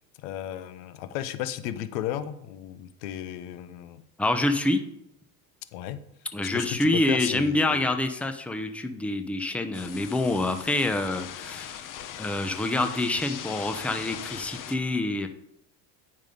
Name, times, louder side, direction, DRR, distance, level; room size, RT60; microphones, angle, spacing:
voice 1, 0.2-4.0 5.7-6.0 6.4-7.9, left 11 dB, 85° left, 13 dB, 0.9 m, -34 dB
voice 2, 4.2-4.8 6.3-11.9 12.2-15.3, left 2 dB, 5° left, 7 dB, 0.8 m, -26 dB
sound 1, 9.7-14.8, left 10 dB, 45° left, 1.0 m, -40 dB
9.5 x 5.6 x 5.2 m, 0.81 s
supercardioid pair, 120°, 46 cm